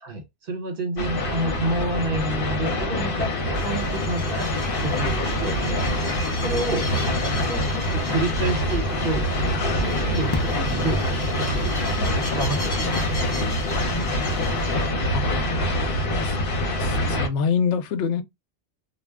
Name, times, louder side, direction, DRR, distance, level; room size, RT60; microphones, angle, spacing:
voice 1, 0.0-6.1 6.4-9.3 9.7-13.6, right 2 dB, 55° right, 1.1 m, -30 dB
sound 1, 1.0-17.3, left 1 dB, 55° left, 0.9 m, -25 dB
sound 2, 3.5-14.9, left 2 dB, 30° left, 0.6 m, -37 dB
sound 3, 8.2-13.5, equal, 25° right, 0.4 m, -36 dB
voice 2, 16.8-18.2, left 6 dB, 85° left, 0.9 m, -25 dB
2.3 x 2.1 x 3.4 m
omnidirectional pair, 1.2 m